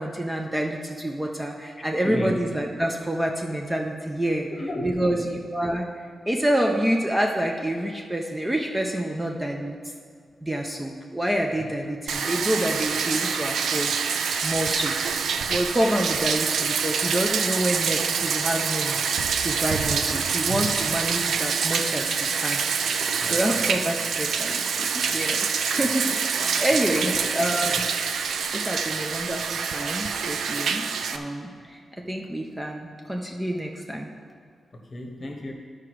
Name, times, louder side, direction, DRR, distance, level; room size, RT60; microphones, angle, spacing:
voice 1, 0.0-4.5 4.8-5.9 6.3-9.8 10.4-13.9 14.4-15.0 15.5-19.0 19.4-27.8 28.5-30.8 31.1-31.8 32.1-34.1, right 1 dB, 10° right, 1 dB, 0.5 m, -27 dB
voice 2, 2.0-2.5 4.5-5.3 19.4-19.5 23.2-23.4 27.0-27.2 34.7-35.5, left 1 dB, 30° left, 2 dB, 1.0 m, -33 dB
Bathtub (filling or washing), 12.1-31.2, right 6 dB, 90° right, 0.4 m, -26 dB
13.0 x 4.8 x 4.6 m, 2.1 s
wide cardioid pair, 160°, 0 cm